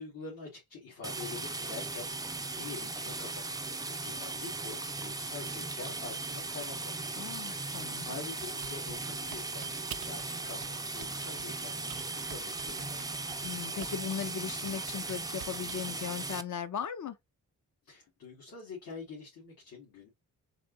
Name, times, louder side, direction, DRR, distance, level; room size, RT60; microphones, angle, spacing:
voice 1, 0.0-2.1 2.5-7.1 7.5-13.3 17.8-20.1, left 4 dB, 85° left, 2.1 m, -46 dB
sound 1, 1.0-16.4, right 3 dB, 10° right, 0.4 m, -38 dB
voice 2, 7.2-8.1 13.4-17.1, left 7 dB, 60° left, 0.7 m, -37 dB
Typing, 8.4-10.3 10.6-11.5 11.9-14.1 14.5-15.9, right 11 dB, 70° right, 0.5 m, -48 dB
4.2 x 2.7 x 3.9 m
cardioid pair, 75°, 34 cm